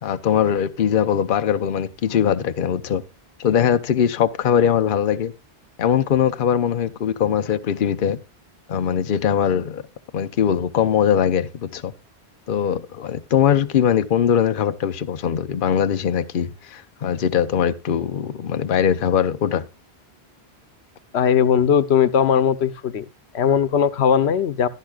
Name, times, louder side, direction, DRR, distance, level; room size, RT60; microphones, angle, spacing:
voice 1, 0.0-3.0 3.4-5.3 5.8-8.2 8.7-9.8 10.1-11.9 12.5-19.6, left 8 dB, 55° left, 0.8 m, -21 dB
voice 2, 21.1-23.1 23.3-24.7, left 8 dB, 90° left, 1.1 m, -18 dB
15.0 x 11.0 x 2.3 m
omnidirectional pair, 1.1 m